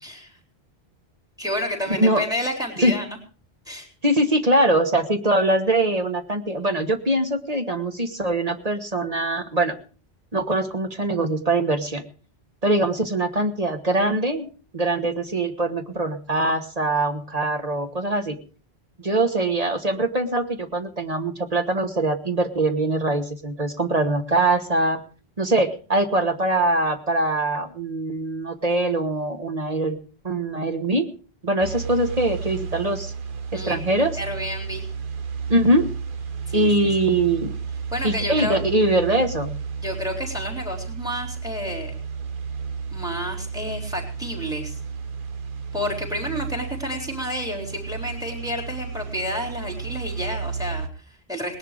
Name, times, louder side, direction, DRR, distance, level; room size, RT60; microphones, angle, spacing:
voice 1, 0.0-0.3 1.4-3.2 3.7-3.9 33.5-33.8 34.1-34.9 36.5-36.9 37.9-38.6 39.8-41.9 42.9-44.8 45.7-51.6, equal, 5° right, 3 dB, 3.9 m, -30 dB
voice 2, 1.9-2.2 2.8-2.9 4.0-9.8 10.3-12.0 12.6-18.4 19.0-25.0 25.4-30.0 30.2-31.1 31.4-33.1 33.5-34.2 35.5-35.9 36.5-37.6 38.0-39.6, right 2 dB, 40° right, 7 dB, 1.4 m, -22 dB
sound 1, 31.6-50.9, right 5 dB, 55° right, 1.1 m, -32 dB
19.0 x 11.0 x 5.0 m, 0.39 s
omnidirectional pair, 1.1 m